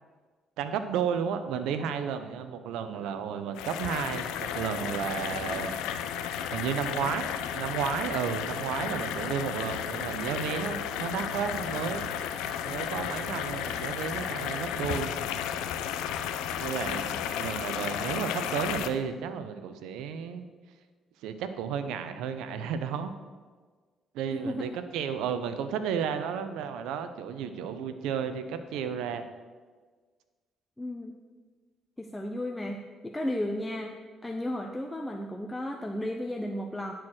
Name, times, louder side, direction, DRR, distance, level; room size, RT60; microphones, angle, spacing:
voice 1, 0.6-5.7 6.5-12.1 12.6-15.1 16.6-17.1 17.4-20.5 21.2-23.1 24.1-29.3, right 7 dB, 80° right, 10 dB, 0.7 m, -32 dB
sound 1, 3.5-18.9, left 9 dB, 85° left, 0.5 m, -33 dB
voice 2, 24.3-24.8 30.8-31.1 32.0-34.0 34.2-36.9, left 1 dB, 10° left, 3 dB, 0.7 m, -34 dB
10.5 x 4.6 x 6.3 m, 1.5 s
supercardioid pair, 75°, 0 cm